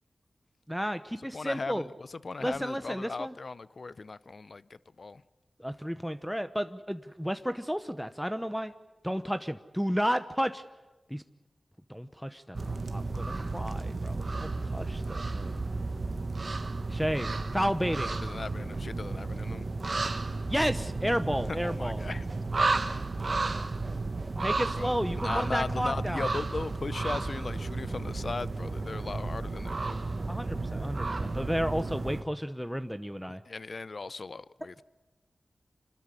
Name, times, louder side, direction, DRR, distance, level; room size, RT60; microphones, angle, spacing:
voice 1, 0.7-1.9 2.4-3.3 5.6-8.7 9.0-10.6 11.1-11.2 11.9-15.6 16.9-18.1 20.5-22.0 24.4-26.3 30.3-33.4, equal, ahead, 0.9 m, -32 dB
voice 2, 1.3-5.2 18.1-19.7 21.6-22.3 24.8-24.9 25.2-30.0 33.5-34.8, left 3 dB, 60° left, 0.6 m, -38 dB
sound 1, 12.5-32.2, right 3 dB, 55° right, 1.3 m, -33 dB
25.5 x 13.0 x 9.8 m
cardioid pair, 45°, 0 cm